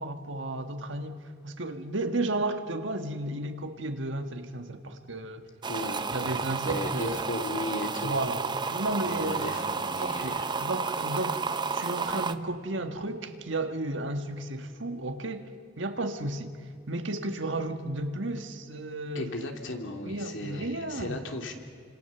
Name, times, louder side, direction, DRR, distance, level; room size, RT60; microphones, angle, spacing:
voice 1, 0.0-5.4 6.1-7.3 8.0-9.5 10.0-11.4 11.7-15.5 15.8-16.5 16.9-19.3 20.0-21.2, right 2 dB, 80° right, 1.6 m, -33 dB
sound 1, 5.6-12.4, right 4 dB, 25° right, 0.6 m, -31 dB
voice 2, 5.7-8.2 9.0-10.6 19.1-21.5, left 1 dB, 90° left, 2.8 m, -36 dB
28.5 x 26.0 x 7.0 m
head